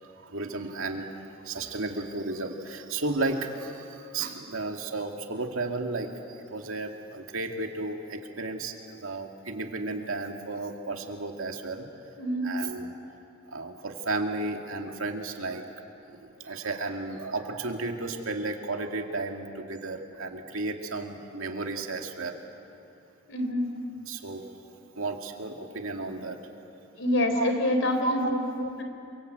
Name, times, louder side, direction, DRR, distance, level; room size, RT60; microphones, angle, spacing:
voice 1, 0.0-11.9 12.4-12.9 13.5-15.7 16.1-22.4 24.1-24.4 25.0-26.5 27.3-27.5 27.8-28.3, right 2 dB, 75° right, 3 dB, 2.4 m, -33 dB
voice 2, 12.2-12.5 23.3-23.7 27.0-28.8, left 1 dB, 65° left, 5 dB, 3.8 m, -26 dB
28.0 x 24.5 x 8.2 m, 2.7 s
head